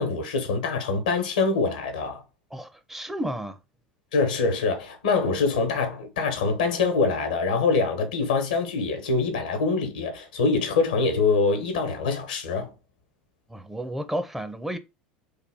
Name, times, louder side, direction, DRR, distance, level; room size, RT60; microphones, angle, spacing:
voice 1, 0.0-2.2 4.1-12.7, left 4 dB, 90° left, 1.0 m, -24 dB
voice 2, 2.5-3.6 13.5-14.8, equal, 5° right, 0.5 m, -32 dB
3.4 x 2.2 x 3.4 m
hypercardioid pair, 90°, 4 cm